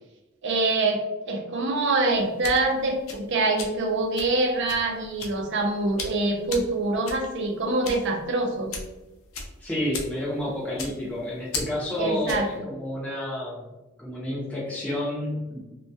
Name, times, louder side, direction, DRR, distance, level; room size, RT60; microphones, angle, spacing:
voice 1, 0.4-8.7 12.0-12.5, right 2 dB, 55° right, 2 dB, 0.5 m, -25 dB
sound 1, 2.1-12.6, left 4 dB, 70° left, 0.5 m, -38 dB
voice 2, 9.6-13.6 14.0-15.6, left 1 dB, 5° left, -7 dB, 0.6 m, -30 dB
2.2 x 2.2 x 2.6 m, 1.0 s
head